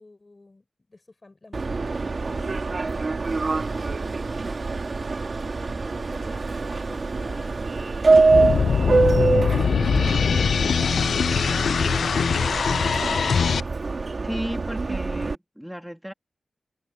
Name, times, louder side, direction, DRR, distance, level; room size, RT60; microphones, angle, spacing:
voice 1, 0.0-3.1 5.6-10.9 11.7-12.6, left 2 dB, 30° left, 5.3 m, -51 dB
Subway metro underground, 1.5-15.3, right 3 dB, 45° right, 2.0 m, -25 dB
sound 1, 8.3-13.6, left 6 dB, 90° left, 0.3 m, -22 dB
voice 2, 14.2-16.1, equal, ahead, 2.2 m, -34 dB
wide cardioid pair, 125°, 0 cm